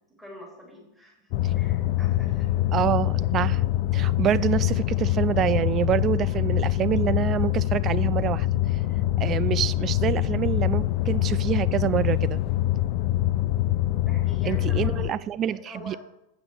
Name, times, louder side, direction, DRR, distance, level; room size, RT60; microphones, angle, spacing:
voice 1, 0.2-2.7 14.0-15.1 15.4-16.0, left 1 dB, 5° right, 3.3 m, -45 dB
sound 1, 1.3-15.1, left 14 dB, 45° left, 0.3 m, -24 dB
voice 2, 2.7-3.6 3.9-8.5 9.2-12.4 14.5-15.6 15.9-16.0, right 10 dB, 30° right, 0.4 m, -26 dB
7.9 x 5.9 x 6.5 m
figure-of-eight pair, 90°, 0 cm